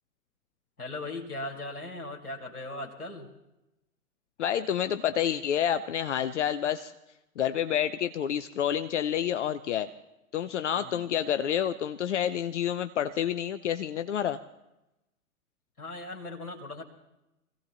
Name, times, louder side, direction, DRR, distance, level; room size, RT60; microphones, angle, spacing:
voice 1, 0.8-3.3 10.8-11.0 15.8-16.8, left 2 dB, 85° left, 0 dB, 2.4 m, -38 dB
voice 2, 4.4-6.9 7.4-9.9 10.3-14.4, left 9 dB, 55° left, 11 dB, 0.7 m, -28 dB
25.0 x 16.5 x 3.0 m, 0.94 s
figure-of-eight pair, 110°, 44 cm